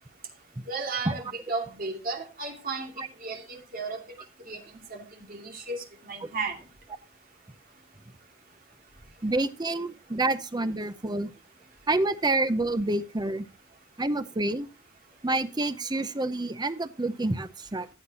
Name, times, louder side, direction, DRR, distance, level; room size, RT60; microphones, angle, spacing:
voice 1, 0.7-2.9 3.2-4.0 4.5-6.6, right 3 dB, 45° right, 2.5 m, -34 dB
voice 2, 9.2-11.3 11.9-13.5 14.0-14.7 15.2-17.9, right 2 dB, 20° right, 0.7 m, -28 dB
15.0 x 8.0 x 2.9 m
head